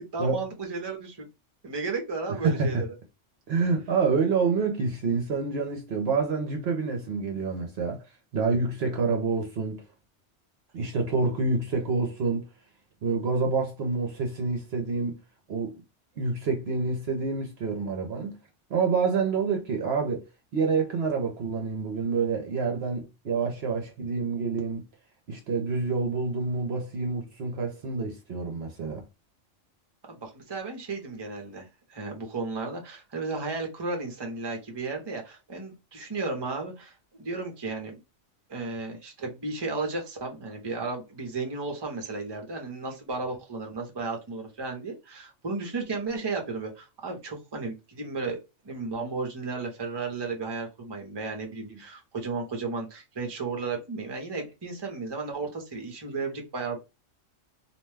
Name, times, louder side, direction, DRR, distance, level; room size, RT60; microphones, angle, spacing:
voice 1, 0.1-1.3 1.6-2.9 30.1-38.0 38.5-48.4 48.6-56.8, right 4 dB, 25° right, 0.7 m, -34 dB
voice 2, 2.3-2.9 3.5-8.0 8.3-9.8 10.7-12.5 13.0-15.2 15.5-15.8 16.2-18.4 18.7-20.2 20.5-24.8 25.3-29.0 51.7-51.8, right 4 dB, 65° right, 0.8 m, -27 dB
2.5 x 2.2 x 3.2 m
omnidirectional pair, 1.3 m